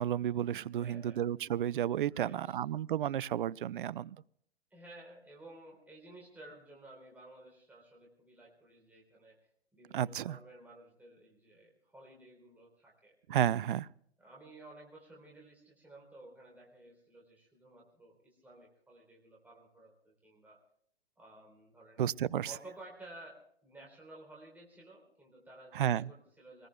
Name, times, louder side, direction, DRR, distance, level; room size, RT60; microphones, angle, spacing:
voice 1, 0.0-4.2 9.9-10.4 13.3-13.9 22.0-22.5 25.7-26.1, right 10 dB, 55° right, 25 dB, 0.5 m, -32 dB
voice 2, 0.7-1.2 2.1-2.6 4.7-9.4 9.7-13.1 14.2-20.6 21.2-22.0 22.5-26.7, right 2 dB, 5° right, -2 dB, 3.8 m, -54 dB
25.0 x 20.0 x 2.3 m, 0.67 s
figure-of-eight pair, 115°, 31 cm